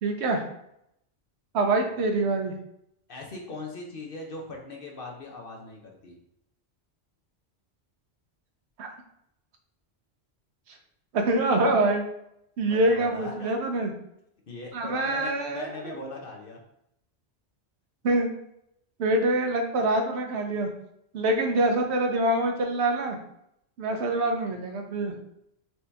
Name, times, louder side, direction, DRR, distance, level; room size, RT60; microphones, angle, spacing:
voice 1, 0.0-0.4 1.5-2.5 8.8-8.9 11.1-12.0 12.6-13.9 14.7-15.9 18.0-18.3 19.0-20.7 21.1-23.2 23.8-25.2, right 2 dB, 70° right, 3 dB, 1.0 m, -25 dB
voice 2, 3.1-6.2 12.7-13.5 14.5-16.6, left 2 dB, 55° left, 0 dB, 0.9 m, -40 dB
4.5 x 2.8 x 3.3 m, 0.78 s
omnidirectional pair, 1.2 m